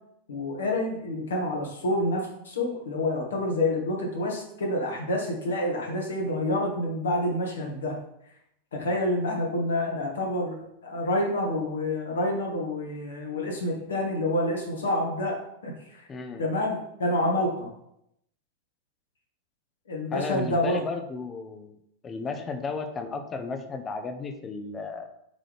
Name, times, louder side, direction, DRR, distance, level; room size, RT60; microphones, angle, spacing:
voice 1, 0.3-8.0 8.7-16.1 16.4-17.7 19.9-20.9, left 1 dB, 65° left, 0 dB, 1.8 m, -28 dB
voice 2, 16.1-16.5 20.1-21.8 22.0-25.1, left 4 dB, 20° left, 6 dB, 0.9 m, -34 dB
8.3 x 3.8 x 3.5 m, 0.77 s
figure-of-eight pair, 90°, 0 cm